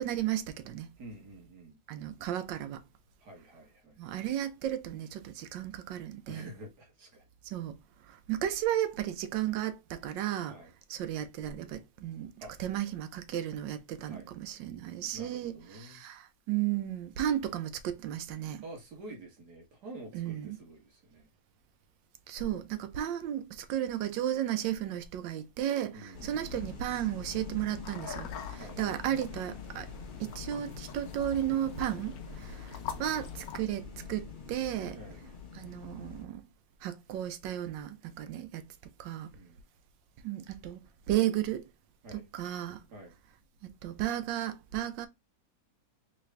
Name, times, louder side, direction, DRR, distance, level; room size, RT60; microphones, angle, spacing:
voice 1, 0.0-0.9 1.9-2.8 4.0-6.5 7.5-7.8 8.1-10.5 10.9-12.3 12.6-15.5 15.8-16.2 16.5-18.6 20.1-20.6 22.3-29.9 30.2-35.0 35.5-36.4 36.8-38.7 39.0-39.3 40.2-41.6 42.1-42.8 43.8-45.1, right 12 dB, 75° right, 1.3 m, -34 dB
voice 2, 1.0-1.8 3.2-4.0 6.3-7.3 10.5-10.7 12.4-12.5 14.0-14.4 15.1-16.0 18.6-21.3 25.9-26.3 28.6-28.8 32.4-32.6 35.0-35.2 39.3-39.6 42.0-42.3 42.9-43.1, right 1 dB, 60° right, 1.7 m, -48 dB
sound 1, 26.1-36.2, left 5 dB, 40° left, 0.8 m, -45 dB
sound 2, 27.8-33.6, left 7 dB, 65° left, 1.0 m, -45 dB
3.8 x 3.2 x 3.2 m
omnidirectional pair, 2.1 m